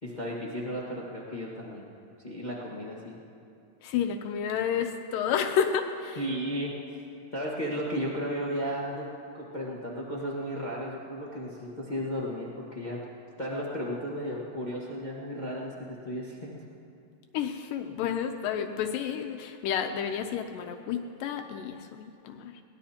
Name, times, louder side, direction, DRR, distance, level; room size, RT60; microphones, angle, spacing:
voice 1, 0.0-1.8 2.2-3.2 6.1-6.7 7.3-9.1 9.3-13.0 13.4-16.6, equal, 60° left, -5 dB, 0.4 m, -34 dB
voice 2, 3.8-6.2 17.3-22.5, left 8 dB, 85° left, 4 dB, 2.3 m, -30 dB
22.0 x 19.5 x 2.9 m, 2.5 s
omnidirectional pair, 3.8 m